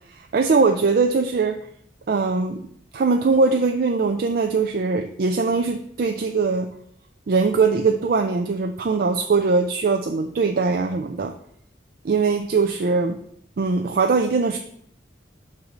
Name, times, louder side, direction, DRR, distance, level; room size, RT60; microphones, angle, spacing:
voice 1, 0.1-1.6 2.1-2.6 2.9-6.7 7.3-11.3 12.0-13.2 13.6-14.6, right 4 dB, 55° right, 4 dB, 0.4 m, -21 dB
7.9 x 2.7 x 6.0 m, 0.67 s
head